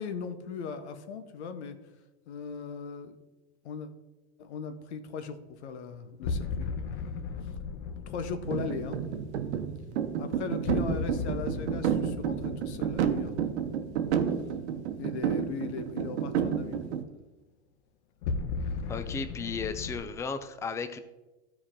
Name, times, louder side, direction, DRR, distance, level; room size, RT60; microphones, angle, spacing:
voice 1, 0.0-1.8 2.3-3.2 3.6-3.9 4.4-6.7 8.1-9.0 10.2-13.3 15.0-16.8, left 6 dB, 80° left, 9 dB, 1.0 m, -38 dB
sound 1, 6.2-15.2 18.2-20.0, left 4 dB, 55° left, 1.0 m, -37 dB
sound 2, 8.5-17.0, right 8 dB, 75° right, 0.9 m, -30 dB
voice 2, 18.9-21.0, left 5 dB, 10° left, 10 dB, 0.4 m, -35 dB
12.5 x 4.8 x 3.7 m, 1.1 s
hypercardioid pair, 110°, 33 cm